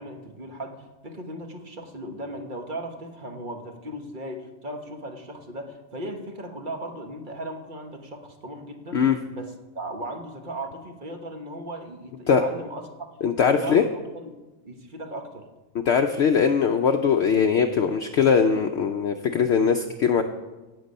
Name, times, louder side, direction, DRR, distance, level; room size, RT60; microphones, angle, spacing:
voice 1, 0.0-9.0 9.3-12.9 13.4-13.8 14.1-14.3 14.6-15.4, right 1 dB, 40° right, 4 dB, 1.3 m, -37 dB
voice 2, 13.2-13.8 15.7-20.2, left 6 dB, 60° left, 5 dB, 0.8 m, -21 dB
17.0 x 6.8 x 5.3 m, 1.2 s
omnidirectional pair, 1.4 m